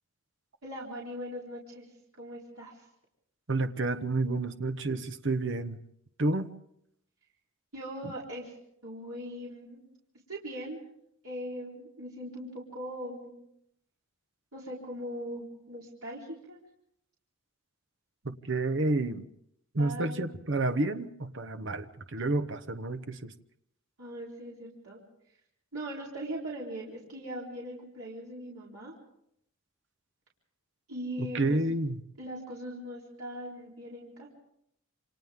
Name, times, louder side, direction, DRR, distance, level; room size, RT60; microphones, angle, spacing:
voice 1, 0.6-1.9 2.2-2.9 7.7-8.5 8.8-9.8 10.3-10.8 11.2-13.3 14.5-16.6 19.8-20.2 24.0-25.0 25.7-28.9 30.9-31.6 32.2-34.3, equal, 90° right, -5 dB, 4.0 m, -40 dB
voice 2, 3.5-5.8 6.2-6.5 8.0-8.1 18.2-19.2 19.7-23.3 31.2-32.0, right 2 dB, 55° right, 9 dB, 1.0 m, -30 dB
28.5 x 26.5 x 3.7 m, 0.75 s
head